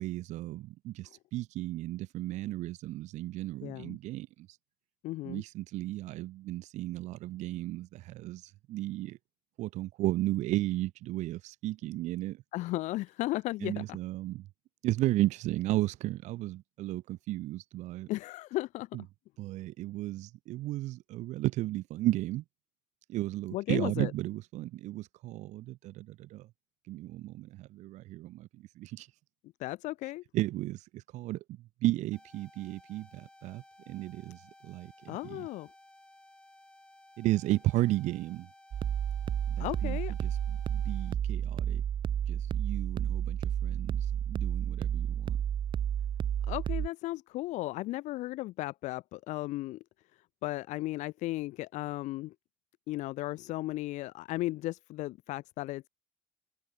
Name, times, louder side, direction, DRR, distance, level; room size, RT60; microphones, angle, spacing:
voice 1, 0.0-4.6 5.2-9.2 9.6-12.4 13.6-14.5 14.8-18.1 18.9-19.0 19.4-22.4 23.1-26.5 26.8-29.2 30.0-35.5 37.2-38.5 39.5-40.4 40.7-41.8 42.3-45.4, right 16 dB, 70° right, 0.8 m, -34 dB
voice 2, 3.6-4.0 5.0-5.4 12.5-14.0 18.1-18.9 23.5-24.1 29.6-30.2 35.1-35.7 39.6-40.1 46.5-49.8 50.4-52.3 52.9-55.9, left 18 dB, 75° left, 0.9 m, -35 dB
sound 1, 32.1-41.1, left 1 dB, 10° left, 6.5 m, -58 dB
sound 2, 38.7-46.9, right 9 dB, 40° right, 0.5 m, -31 dB
cardioid pair, 115°, 13 cm